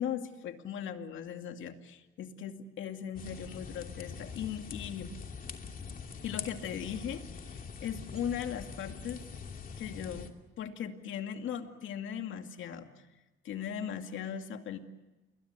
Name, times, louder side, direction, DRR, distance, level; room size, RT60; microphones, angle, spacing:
voice 1, 0.0-5.1 6.2-9.2 9.8-12.9 13.4-14.8, left 8 dB, 75° left, 6 dB, 2.5 m, -38 dB
sound 1, 3.1-10.3, left 5 dB, 45° left, 2.8 m, -44 dB
29.0 x 22.0 x 8.2 m, 1.1 s
cardioid pair, 90°, 20 cm